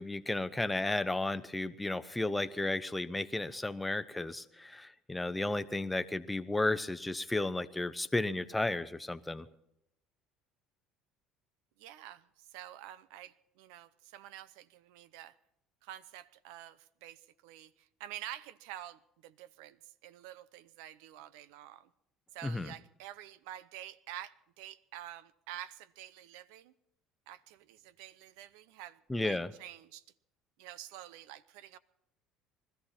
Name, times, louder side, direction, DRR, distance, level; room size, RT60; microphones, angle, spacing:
voice 1, 0.0-9.5 22.4-22.7 29.1-29.5, left 2 dB, 10° left, 12 dB, 0.8 m, -33 dB
voice 2, 11.8-15.3 15.8-21.9 22.3-26.7 27.3-30.0 30.6-31.8, right 13 dB, 85° right, 18 dB, 0.7 m, -48 dB
21.0 x 14.0 x 4.4 m, 0.79 s
cardioid pair, 115°, 0 cm